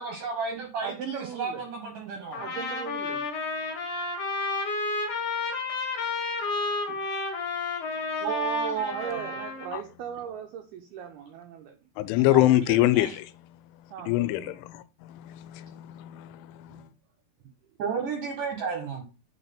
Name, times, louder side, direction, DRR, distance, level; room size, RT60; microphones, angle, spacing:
voice 1, 0.0-2.5 8.2-9.4 12.1-13.2 17.8-19.0, right 5 dB, 75° right, 1.9 m, -32 dB
voice 2, 0.8-1.6 2.4-3.3 6.9-7.0 8.9-11.8 13.9-14.5 16.7-16.8, right 8 dB, 90° right, 2.2 m, -39 dB
Trumpet, 2.3-9.7, left 3 dB, 50° left, 2.6 m, -31 dB
voice 3, 12.0-13.3 14.1-16.9, left 16 dB, 90° left, 3.1 m, -25 dB
8.8 x 4.0 x 4.3 m
omnidirectional pair, 5.4 m